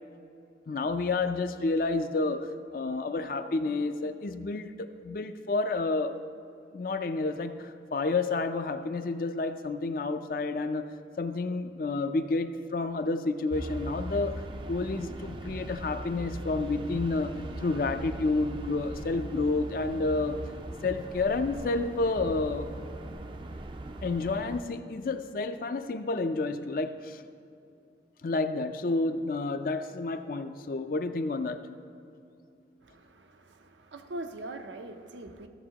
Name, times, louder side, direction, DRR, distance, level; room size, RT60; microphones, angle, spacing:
voice 1, 0.7-6.2 6.7-10.9 11.2-20.4 20.8-22.7 24.0-27.2 28.2-31.6, left 3 dB, 50° left, 9 dB, 0.4 m, -30 dB
sound 1, 13.5-24.6, right 1 dB, 25° right, 0.4 m, -40 dB
voice 2, 32.8-35.5, right 2 dB, 90° right, 6 dB, 0.7 m, -42 dB
14.5 x 7.2 x 2.9 m, 2.6 s
head